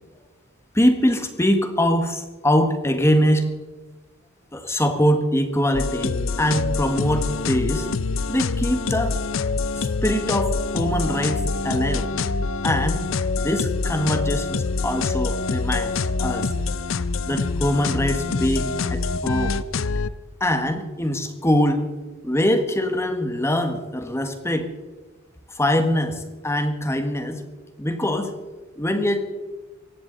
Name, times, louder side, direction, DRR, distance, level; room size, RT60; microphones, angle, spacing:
voice 1, 0.7-3.5 4.5-7.9 8.3-9.2 9.7-12.1 12.6-13.0 13.4-16.5 17.3-19.6 20.4-21.8 22.2-24.7 25.5-27.4 27.8-28.3 28.8-29.3, equal, 15° left, 7 dB, 1.3 m, -23 dB
sound 1, 5.7-20.1, left 4 dB, 75° left, 0.6 m, -25 dB
18.0 x 15.0 x 3.9 m, 1.2 s
head